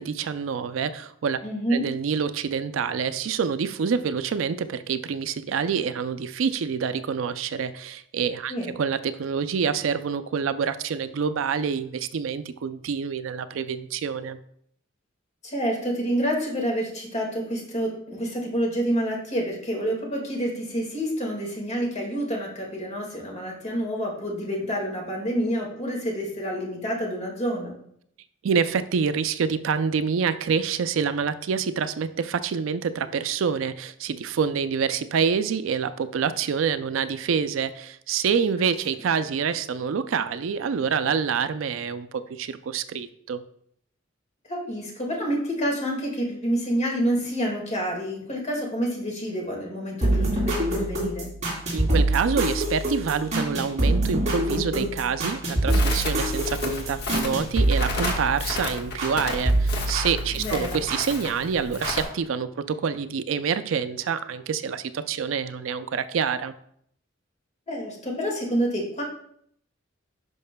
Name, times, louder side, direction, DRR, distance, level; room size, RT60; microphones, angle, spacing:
voice 1, 0.0-1.4 1.7-14.4 28.4-43.4 51.7-66.6, right 6 dB, 75° right, 12 dB, 0.4 m, -27 dB
voice 2, 1.4-1.9 8.5-8.7 15.4-27.7 38.6-38.7 44.5-51.3 60.4-60.8 67.7-69.0, equal, 35° left, -1 dB, 1.9 m, -28 dB
sound 1, 50.0-59.2 59.4-61.0 61.8-61.9, right 1 dB, 35° right, 3.1 m, -25 dB
Crackle, 55.7-62.0, left 3 dB, 55° left, 1.3 m, -33 dB
10.5 x 5.6 x 2.2 m, 0.68 s
head